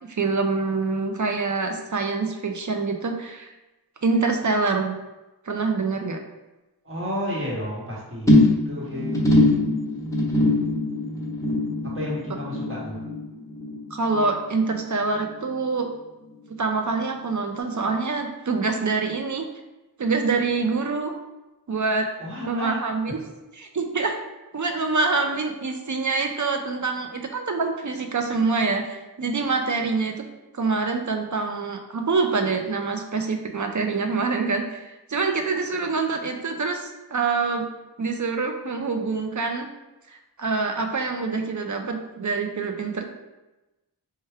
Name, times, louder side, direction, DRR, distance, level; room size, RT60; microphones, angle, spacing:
voice 1, 0.0-3.5 4.0-5.0 5.4-6.2 13.9-15.9 16.6-19.5 20.0-21.1 21.7-22.1 22.5-23.2 23.6-24.2 24.5-30.2 30.5-37.6 38.0-39.7 40.1-43.0, right 4 dB, 50° right, 4 dB, 0.5 m, -25 dB
voice 2, 6.8-8.3 8.6-9.1 11.8-13.0 22.2-23.2, equal, 30° right, -5 dB, 1.1 m, -32 dB
sound 1, 8.3-14.9 15.1-15.5 15.9-16.0, left 1 dB, 10° left, 0.7 m, -23 dB
4.5 x 2.2 x 3.4 m, 1.0 s
wide cardioid pair, 50°, 39 cm